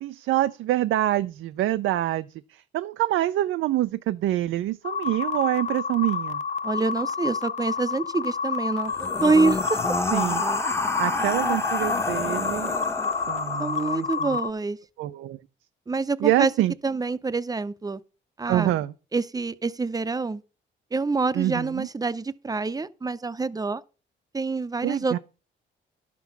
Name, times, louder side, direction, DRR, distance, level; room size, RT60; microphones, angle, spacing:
voice 1, 0.0-6.4 10.1-10.4 11.0-12.8 13.3-14.3 15.0-15.4 16.2-16.7 18.5-18.9 21.3-21.9 24.8-25.2, right 14 dB, 80° right, 0.5 m, -26 dB
sound 1, 4.8-14.5, left 5 dB, 35° left, 0.5 m, -29 dB
voice 2, 6.6-9.8 13.6-14.8 15.9-16.5 16.8-18.0 18.4-18.7 19.1-20.4 20.9-23.8 24.3-25.2, right 3 dB, 20° right, 0.6 m, -26 dB
sound 2, 8.9-14.1, left 2 dB, 15° left, 0.9 m, -29 dB
11.0 x 6.0 x 5.8 m
cardioid pair, 90°, 20 cm